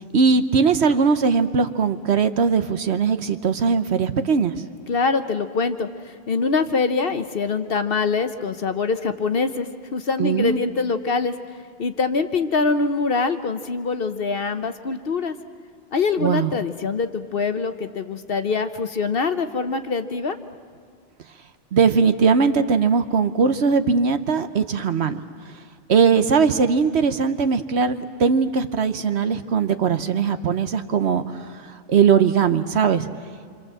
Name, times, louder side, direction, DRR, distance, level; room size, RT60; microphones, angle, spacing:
voice 1, 0.1-4.6 10.2-10.6 16.2-16.5 21.7-25.2 25.9-33.1, right 5 dB, 60° right, 10 dB, 1.1 m, -20 dB
voice 2, 4.9-11.3 11.8-15.3 15.9-20.4, left 4 dB, 50° left, 9 dB, 1.0 m, -24 dB
27.0 x 25.5 x 7.6 m, 2.1 s
omnidirectional pair, 1.3 m